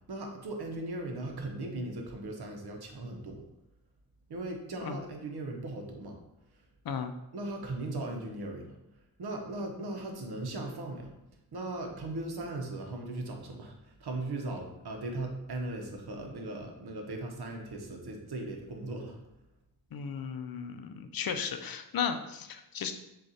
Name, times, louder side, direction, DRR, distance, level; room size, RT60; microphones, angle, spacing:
voice 1, 0.1-3.4 4.3-6.2 7.3-8.7 9.2-11.1 11.5-19.2, right 2 dB, 75° right, 2 dB, 0.8 m, -38 dB
voice 2, 19.9-22.9, left 7 dB, 65° left, 7 dB, 0.5 m, -35 dB
6.3 x 2.4 x 2.7 m, 0.91 s
wide cardioid pair, 110°, 39 cm